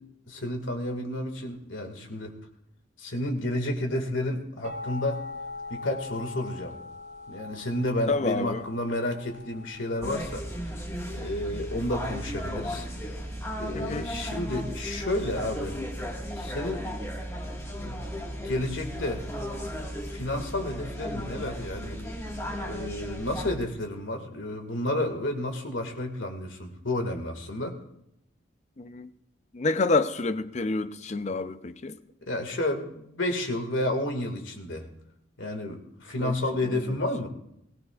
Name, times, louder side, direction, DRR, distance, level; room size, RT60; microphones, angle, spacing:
voice 1, 0.3-2.4 3.0-5.2 5.7-6.8 7.3-10.5 11.1-12.9 13.6-15.8 16.3-16.9 17.8-17.9 18.4-19.3 20.1-22.0 22.6-27.8 32.3-34.9 35.4-37.3, left 1 dB, 85° left, 1.9 m, -31 dB
sound 1, 4.6-16.1, left 3 dB, 35° right, 1.0 m, -43 dB
voice 2, 8.1-8.6 13.7-14.1 28.8-29.1 29.5-32.0 36.2-36.3 36.6-36.9, left 3 dB, 35° left, 0.5 m, -28 dB
sound 2, 10.0-23.5, equal, 15° left, 1.6 m, -35 dB
21.5 x 16.5 x 2.4 m
head